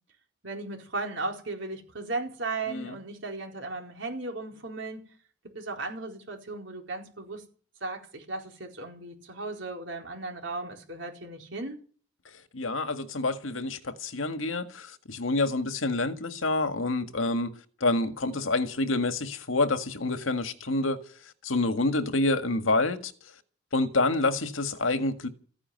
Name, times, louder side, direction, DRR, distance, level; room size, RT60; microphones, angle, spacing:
voice 1, 0.4-5.1 5.5-7.4 7.8-11.8, right 3 dB, 65° right, 4.4 m, -36 dB
voice 2, 12.5-17.5 17.8-21.0 21.4-23.1 23.7-25.3, left 2 dB, 85° left, 1.8 m, -27 dB
15.0 x 10.0 x 9.6 m
head